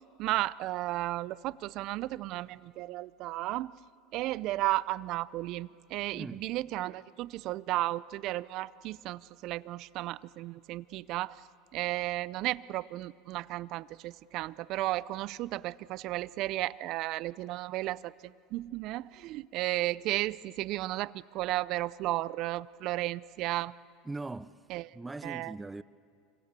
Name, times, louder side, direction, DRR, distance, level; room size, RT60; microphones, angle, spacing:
voice 1, 0.2-3.7 4.1-11.4 11.7-23.7 24.7-24.9 25.2-25.5, right 17 dB, 55° right, 0.6 m, -34 dB
voice 2, 6.1-6.5 24.0-24.6 24.9-25.8, right 3 dB, 15° right, 0.7 m, -40 dB
26.0 x 23.5 x 8.2 m
hypercardioid pair, 95°, 0 cm